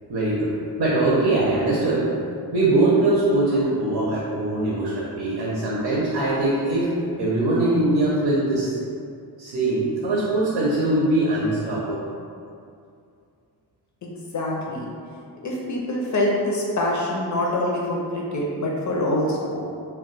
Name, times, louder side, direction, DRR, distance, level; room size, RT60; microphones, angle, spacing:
voice 1, 0.1-2.1 2.5-8.8 9.4-12.0, right 2 dB, 80° right, -6 dB, 0.7 m, -22 dB
voice 2, 14.0-14.9 15.4-19.6, left 1 dB, 45° left, -3 dB, 0.4 m, -25 dB
2.2 x 2.2 x 3.8 m, 2.4 s
wide cardioid pair, 155°, 41 cm